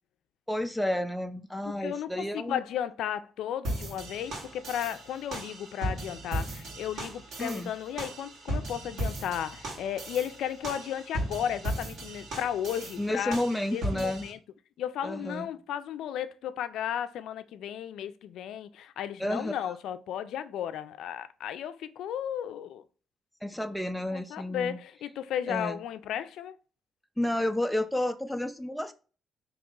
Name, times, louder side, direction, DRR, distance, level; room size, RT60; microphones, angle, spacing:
voice 1, 0.5-2.6 7.4-7.7 13.0-14.3 15.0-15.5 19.2-19.5 23.4-24.8 25.5-25.8 27.2-28.9, left 1 dB, 5° left, 0.4 m, -31 dB
voice 2, 1.8-13.4 13.7-14.4 14.8-22.8 24.1-26.5, left 10 dB, 80° left, 0.4 m, -34 dB
sound 1, 3.6-14.3, right 1 dB, 70° right, 1.6 m, -37 dB
4.0 x 2.9 x 3.7 m
cardioid pair, 90°, 0 cm